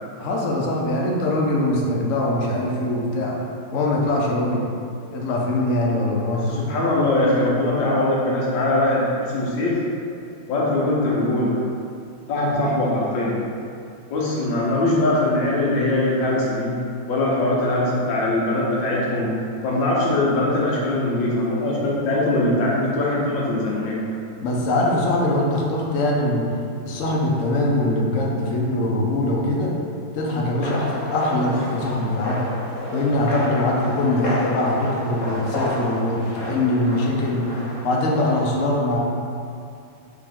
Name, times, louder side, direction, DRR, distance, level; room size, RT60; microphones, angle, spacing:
voice 1, 0.2-3.4 3.7-4.6 5.1-6.6 24.4-26.5 26.8-29.7 30.1-32.4 32.9-37.6 37.8-39.0, left 1 dB, 90° left, -2 dB, 0.6 m, -22 dB
voice 2, 6.5-9.8 10.5-11.6 12.3-13.4 14.1-16.7 17.1-19.3 19.6-24.0 33.6-33.7, left 1 dB, 70° left, -5 dB, 1.5 m, -21 dB
sound 1, 30.6-38.4, left 1 dB, 55° left, 0.9 m, -31 dB
4.9 x 2.9 x 3.7 m, 2.4 s
omnidirectional pair, 2.2 m